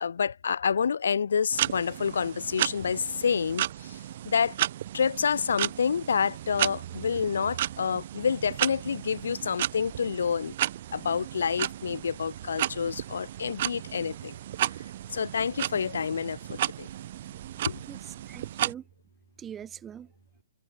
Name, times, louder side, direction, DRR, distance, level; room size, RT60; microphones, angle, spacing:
voice 1, 0.0-4.0 4.3-4.6 4.9-10.6 10.9-14.4 15.1-16.9 17.7-17.8, left 6 dB, 70° left, 0.4 m, -28 dB
sound 1, 1.5-18.7, right 12 dB, 50° right, 0.7 m, -34 dB
voice 2, 17.1-18.8 19.4-20.1, right 9 dB, 15° right, 0.5 m, -44 dB
figure-of-eight pair, 130°, 0 cm